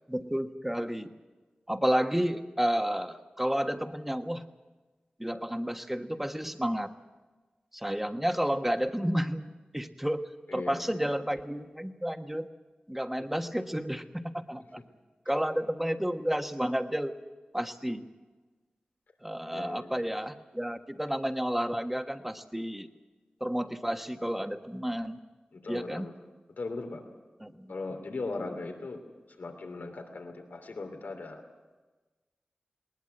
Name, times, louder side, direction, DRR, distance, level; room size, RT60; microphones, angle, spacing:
voice 1, 0.1-1.1 1.7-4.4 5.2-6.9 7.7-9.5 9.7-12.5 12.9-14.8 15.3-17.1 17.5-18.1 19.2-22.9 23.4-25.2 25.7-26.1 27.4-27.7, equal, 5° right, 6 dB, 1.4 m, -31 dB
voice 2, 10.5-11.1 19.5-19.8 25.6-26.1 26.6-27.0 27.7-29.0 29.4-31.4, left 3 dB, 85° left, 4 dB, 3.0 m, -38 dB
20.0 x 20.0 x 7.9 m, 1.2 s
wide cardioid pair, 65°, 3 cm